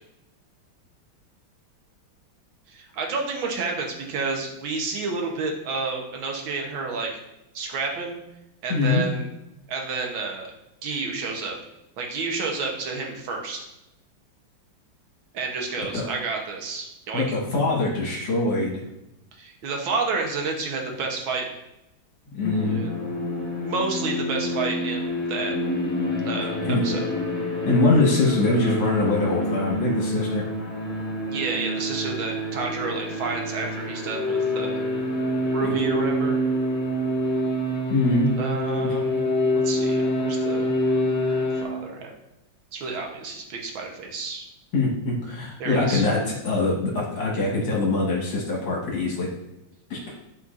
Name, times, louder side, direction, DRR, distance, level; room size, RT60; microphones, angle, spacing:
voice 1, 2.7-7.1 7.5-8.2 8.6-9.3 9.7-10.5 10.8-11.6 12.0-13.7 15.3-17.4 19.4-21.5 22.5-22.9 23.6-25.5 26.2-27.1 31.3-34.8 35.5-36.4 38.4-39.2 39.5-40.7 41.6-42.1 42.7-44.5 45.6-46.0, right 4 dB, 75° right, 1 dB, 1.8 m, -30 dB
voice 2, 8.7-9.0 15.8-16.1 17.1-18.8 22.3-22.8 26.6-26.8 27.7-30.4 37.9-38.3 38.8-39.0 44.7-49.3 49.9-50.0, left 2 dB, 65° left, -4 dB, 2.0 m, -23 dB
sound 1, 22.4-41.6, left 1 dB, 10° left, 1.4 m, -27 dB
11.0 x 4.3 x 2.5 m, 0.90 s
omnidirectional pair, 2.2 m